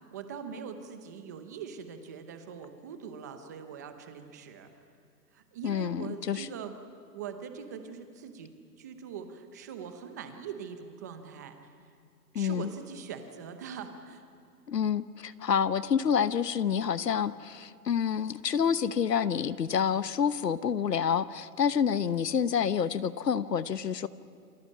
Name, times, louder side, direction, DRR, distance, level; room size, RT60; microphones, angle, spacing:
voice 1, 0.1-4.7 5.3-6.7 7.1-11.6 12.3-14.2, right 7 dB, 10° right, 8 dB, 0.8 m, -42 dB
voice 2, 5.6-6.5 12.3-12.7 14.7-24.1, left 7 dB, 75° left, 15 dB, 1.2 m, -28 dB
28.0 x 24.0 x 8.6 m, 2.3 s
hypercardioid pair, 160°, 49 cm